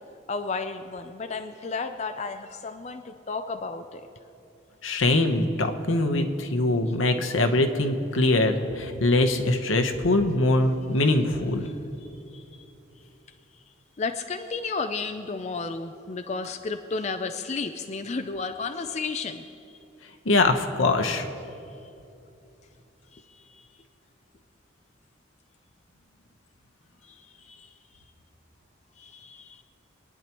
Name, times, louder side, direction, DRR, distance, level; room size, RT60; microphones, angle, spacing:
voice 1, 0.3-4.1 11.6-11.7 12.0-12.4 14.0-19.6 23.1-23.8 27.0-27.7 29.0-29.6, left 4 dB, 35° left, 7 dB, 0.4 m, -33 dB
voice 2, 4.8-11.6 20.2-21.3, left 2 dB, 85° left, 5 dB, 1.0 m, -23 dB
26.0 x 9.9 x 3.0 m, 2.8 s
head